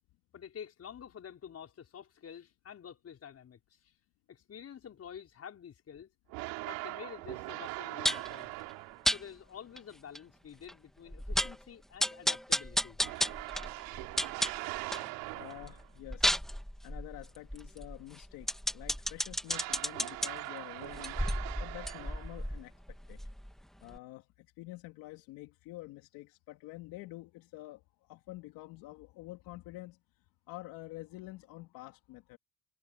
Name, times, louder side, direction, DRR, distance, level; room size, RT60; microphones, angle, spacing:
voice 1, 0.3-3.9 4.3-6.1 6.7-8.5 9.1-13.0, left 8 dB, 45° left, 5.6 m, -49 dB
sound 1, 6.3-9.3 13.0-15.9 19.5-22.6, right 23 dB, 80° right, 3.4 m, -41 dB
sound 2, 8.0-8.3 9.0-9.2 9.8-9.9 10.1-10.2 10.7-10.8 11.1-11.6 12.0-15.1 15.5-20.3 20.9-23.6 23.9-24.0, equal, ahead, 2.7 m, -33 dB
voice 2, 15.3-16.4 16.8-21.2 21.6-22.7 23.1-23.2 23.8-30.0 30.5-32.4, left 19 dB, 75° left, 2.8 m, -48 dB
supercardioid pair, 85°, 35 cm